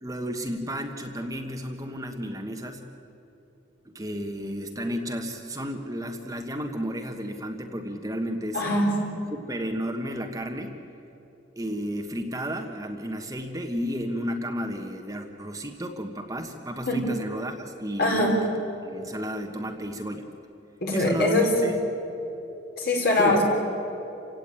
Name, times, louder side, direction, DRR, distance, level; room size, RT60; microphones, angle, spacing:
voice 1, 0.0-2.8 3.8-8.6 9.3-10.8 11.6-18.5 18.8-20.3 20.9-21.8 23.2-23.4, equal, 15° right, 4 dB, 1.3 m, -32 dB
voice 2, 8.5-8.9 16.9-17.0 18.0-18.3 20.8-21.5 22.8-23.4, left 1 dB, 55° left, 0 dB, 4.8 m, -22 dB
28.5 x 17.0 x 9.0 m, 3.0 s
head